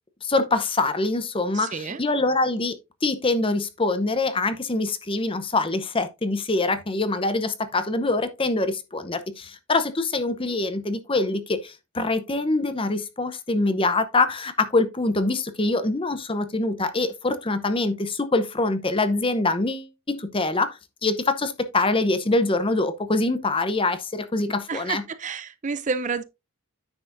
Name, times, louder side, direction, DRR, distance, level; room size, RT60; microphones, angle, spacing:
voice 1, 0.2-2.8 3.0-25.0, left 2 dB, 25° left, 0.8 m, -24 dB
voice 2, 1.5-2.0 24.7-26.2, right 5 dB, 35° right, 0.5 m, -30 dB
9.6 x 6.8 x 2.6 m
head